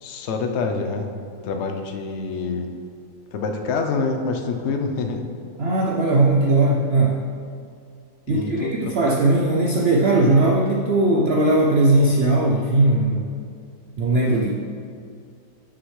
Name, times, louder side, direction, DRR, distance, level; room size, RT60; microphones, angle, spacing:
voice 1, 0.0-1.1 1.4-2.7 3.3-5.3 8.3-8.9, left 4 dB, 60° left, 4 dB, 0.7 m, -26 dB
voice 2, 5.6-7.2 8.3-13.3 14.0-14.5, right 2 dB, 90° right, -1 dB, 0.5 m, -19 dB
9.4 x 6.2 x 3.2 m, 2.3 s
omnidirectional pair, 1.8 m